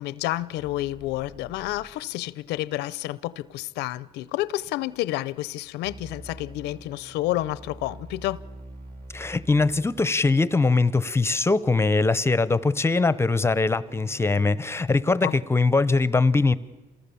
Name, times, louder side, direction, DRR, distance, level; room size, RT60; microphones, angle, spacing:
voice 1, 0.0-8.4 15.2-15.3, left 16 dB, 85° left, 0.7 m, -30 dB
sound 1, 0.6-2.0 5.8-10.0 13.8-14.5, right 1 dB, 60° right, 6.1 m, -45 dB
voice 2, 9.1-16.6, left 3 dB, 15° left, 0.8 m, -22 dB
27.5 x 19.5 x 7.0 m
cardioid pair, 110°, 17 cm